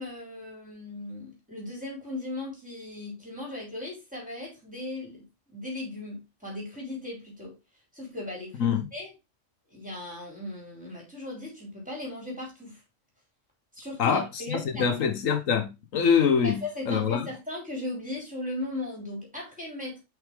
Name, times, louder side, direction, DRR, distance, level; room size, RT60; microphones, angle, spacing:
voice 1, 0.0-7.6 7.9-9.1 9.7-12.8 13.7-14.9 16.4-20.0, left 2 dB, 5° right, 3.8 m, -37 dB
voice 2, 14.0-16.6 16.9-17.3, left 7 dB, 90° left, 1.5 m, -24 dB
6.0 x 5.6 x 3.6 m
omnidirectional pair, 1.3 m